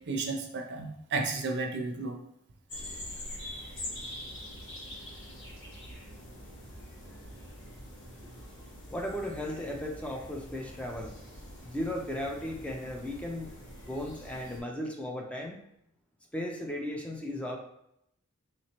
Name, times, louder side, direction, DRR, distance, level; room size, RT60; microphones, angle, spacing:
voice 1, 0.1-2.1, right 3 dB, 55° right, 3 dB, 0.6 m, -32 dB
sound 1, 2.7-14.6, left 1 dB, 60° left, 1.2 m, -44 dB
voice 2, 8.9-11.2 11.6-13.5 13.9-15.6 16.3-17.6, left 1 dB, 5° left, 1 dB, 0.4 m, -36 dB
3.6 x 2.9 x 2.8 m, 0.77 s
head